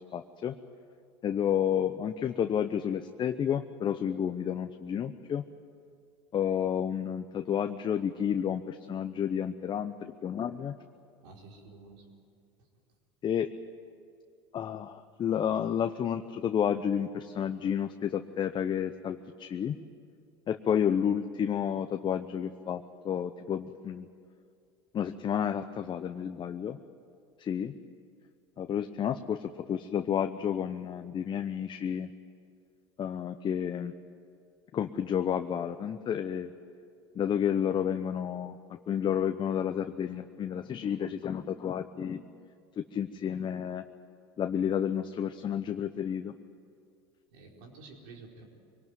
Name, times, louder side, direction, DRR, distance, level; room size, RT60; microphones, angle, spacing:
voice 1, 0.1-0.6 1.2-5.4 6.3-10.7 13.2-13.5 14.5-19.8 20.5-24.1 24.9-26.8 27.4-27.7 28.6-32.1 33.0-33.9 34.7-36.5 37.1-42.2 42.8-43.8 44.4-46.3, left 8 dB, 35° left, 8 dB, 0.9 m, -31 dB
voice 2, 11.2-12.0 47.3-48.4, right 3 dB, 70° right, 0 dB, 4.7 m, -50 dB
23.5 x 18.5 x 9.4 m, 2.3 s
hypercardioid pair, 85°, 14 cm